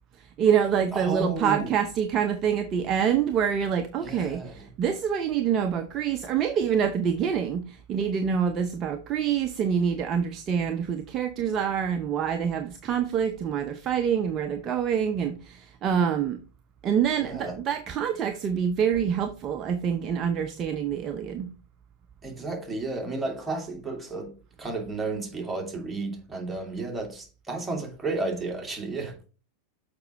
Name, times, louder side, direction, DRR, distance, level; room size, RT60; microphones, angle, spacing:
voice 1, 0.2-16.4 16.8-21.5, right 8 dB, 30° right, 0.7 m, -26 dB
voice 2, 0.9-1.7 4.0-4.5 17.2-17.6 22.2-29.2, right 3 dB, 10° right, 2.3 m, -32 dB
6.9 x 5.2 x 4.6 m
figure-of-eight pair, 90°, 0 cm